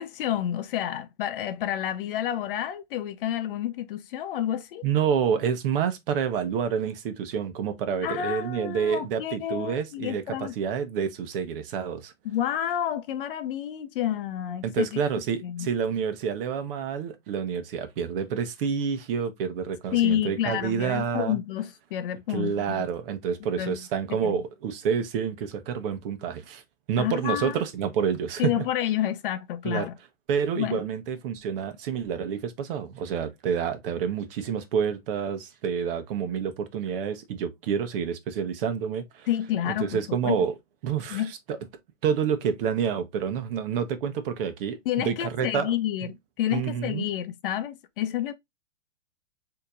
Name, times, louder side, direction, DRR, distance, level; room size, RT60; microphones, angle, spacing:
voice 1, 0.0-4.8 8.0-10.5 12.2-14.9 15.4-15.7 19.9-22.8 23.6-23.8 24.2-24.4 27.0-27.5 28.4-29.9 30.6-30.8 39.3-40.5 41.1-41.3 44.9-46.1 46.4-48.3, left 11 dB, 45° left, 0.6 m, -29 dB
voice 2, 4.8-12.1 14.6-21.4 22.3-26.6 26.9-28.6 29.6-29.9 30.3-39.3 39.7-40.5 40.8-41.6 42.0-45.7 46.0-46.1 46.5-47.0, right 7 dB, 45° right, 1.0 m, -28 dB
6.4 x 2.9 x 2.3 m
hypercardioid pair, 140°, 38 cm